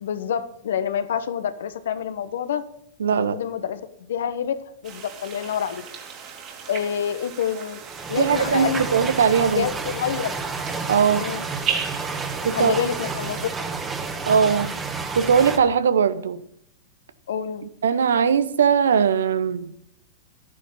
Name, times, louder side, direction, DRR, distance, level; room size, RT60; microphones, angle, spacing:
voice 1, 0.0-2.6 3.1-3.8 4.1-4.6 4.8-5.8 6.7-7.8 8.1-8.8 9.4-10.4 11.2-11.4 12.5-13.5 17.3-17.7, left 8 dB, 75° left, 12 dB, 1.2 m, -27 dB
voice 2, 3.0-3.4 8.2-9.7 10.9-11.3 12.4-12.7 14.3-14.7 15.2-16.4 17.8-19.7, right 7 dB, 85° right, 15 dB, 0.9 m, -20 dB
sound 1, 4.8-13.5, right 7 dB, 40° right, 3.2 m, -36 dB
sound 2, 7.8-15.6, right 4 dB, 20° right, 1.7 m, -30 dB
11.5 x 10.0 x 5.6 m, 0.73 s
hypercardioid pair, 110°, 0 cm